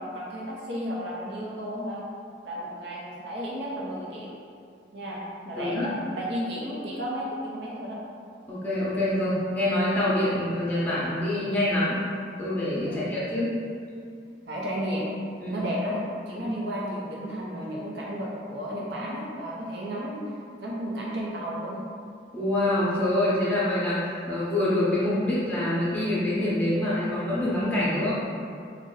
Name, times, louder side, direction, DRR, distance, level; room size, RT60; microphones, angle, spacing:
voice 1, 0.0-2.0 2.4-4.3 4.9-8.0 12.9-13.0 14.5-15.1 15.4-16.0 16.3-20.2 20.6-21.8, equal, 80° right, -4 dB, 0.7 m, -33 dB
voice 2, 5.5-5.9 8.5-12.0 12.4-13.6 15.4-15.6 16.4-16.5 22.3-28.1, left 1 dB, 10° left, -9 dB, 0.7 m, -26 dB
2.6 x 2.2 x 3.8 m, 2.3 s
head